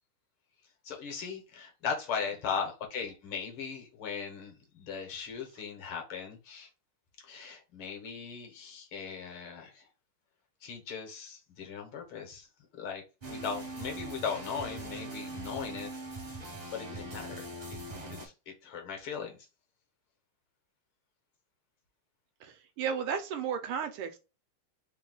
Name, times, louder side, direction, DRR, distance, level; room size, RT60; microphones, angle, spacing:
voice 1, 0.8-6.7 7.2-9.9 10.6-12.5 12.7-13.0 13.3-15.9 16.2-17.8 18.1-19.4, left 6 dB, 75° left, 1.9 m, -38 dB
sound 1, 13.2-18.3, right 2 dB, 30° right, 0.7 m, -41 dB
voice 2, 22.4-24.2, right 7 dB, 80° right, 1.5 m, -34 dB
4.1 x 2.2 x 3.8 m
omnidirectional pair, 2.4 m